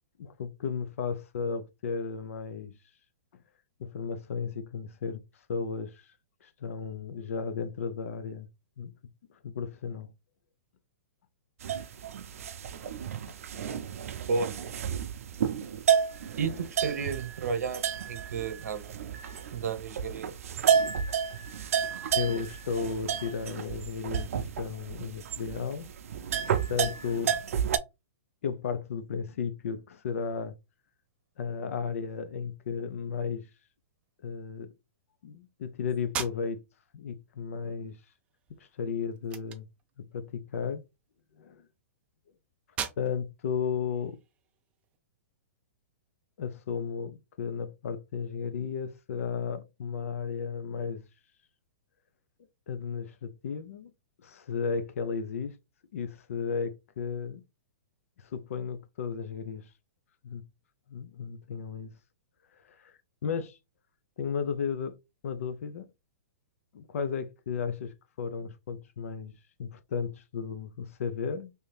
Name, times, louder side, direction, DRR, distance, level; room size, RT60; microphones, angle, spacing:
voice 1, 0.2-2.7 3.8-5.2 5.5-6.1 6.4-8.5 8.8-8.9 9.4-10.1 22.1-25.9 26.7-27.3 28.4-30.5 31.4-33.5 34.2-34.7 35.2-36.6 36.9-38.0 38.6-39.7 40.0-40.8 41.4-41.7 43.0-44.2 46.4-51.0 52.7-53.9 54.2-55.6 55.9-57.4 58.2-59.7 60.2-60.4 60.9-61.9 62.7-63.6 64.2-65.0 65.2-65.8 66.7-69.3 69.6-71.5, left 6 dB, 65° left, 0.5 m, -34 dB
sound 1, 11.6-27.8, right 8 dB, 65° right, 0.5 m, -31 dB
voice 2, 16.4-18.9 19.5-20.3, right 5 dB, 85° right, 0.9 m, -32 dB
sound 2, 36.0-45.0, right 8 dB, 15° right, 0.3 m, -43 dB
3.4 x 2.7 x 3.2 m
hypercardioid pair, 165°, 8 cm